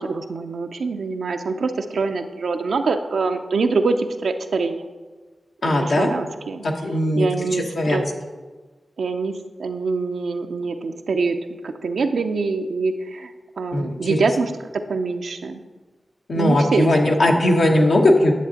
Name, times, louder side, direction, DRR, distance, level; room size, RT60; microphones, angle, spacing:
voice 1, 0.0-4.9 5.6-6.7 7.1-8.1 9.0-11.4 11.6-13.3 13.6-15.6 16.4-17.5, right 4 dB, 90° right, 6 dB, 0.5 m, -24 dB
voice 2, 5.6-6.1 6.6-8.1 13.7-14.3 16.3-18.3, left 1 dB, 80° left, 1 dB, 1.0 m, -19 dB
10.0 x 7.4 x 2.9 m, 1.3 s
cardioid pair, 40°, 0 cm